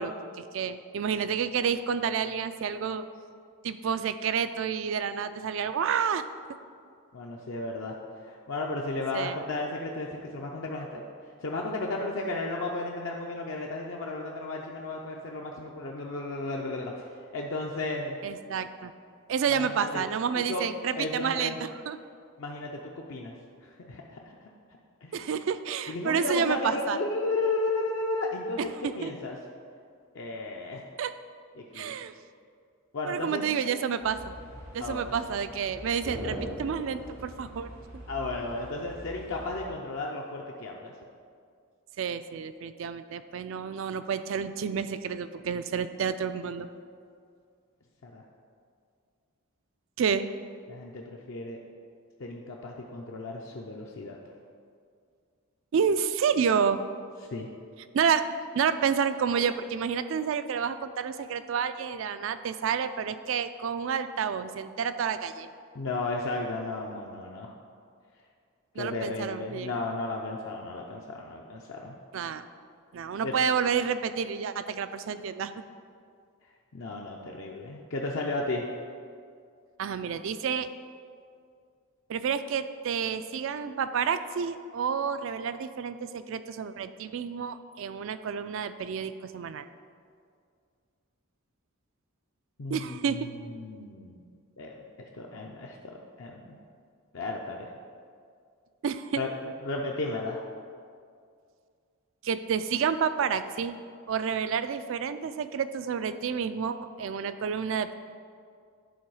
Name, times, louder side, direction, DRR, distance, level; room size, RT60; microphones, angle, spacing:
voice 1, 0.0-3.0 3.6-6.2 9.1-9.4 18.2-18.9 19.3-22.0 25.1-27.0 28.6-29.1 31.0-31.1 31.7-32.1 33.0-34.3 34.7-37.7 42.0-46.7 50.0-50.3 55.7-56.8 57.9-58.2 58.5-65.5 68.8-69.7 72.1-72.5 72.9-75.5 79.8-80.7 82.1-89.7 92.7-93.3 98.8-99.2 102.2-103.8 104.1-107.9, right 7 dB, 60° right, 12 dB, 0.3 m, -29 dB
voice 2, 7.1-11.0 11.4-18.2 19.5-20.0 20.3-20.6 21.0-21.6 22.4-23.3 23.6-24.5 25.0-25.3 25.9-29.4 30.1-30.8 31.6-31.9 32.9-33.4 34.8-35.2 38.1-40.9 48.0-48.2 50.7-51.6 52.2-54.2 57.3-57.5 65.7-67.5 68.8-72.0 73.2-73.3 76.7-78.7 92.6-94.2 94.6-94.9 95.1-96.6 97.1-97.7 99.2-99.3 99.6-100.4, left 2 dB, 60° left, -1 dB, 0.5 m, -34 dB
sound 1, 34.0-39.6, equal, 85° right, 2.0 m, -41 dB
10.0 x 3.9 x 4.8 m, 2.3 s
head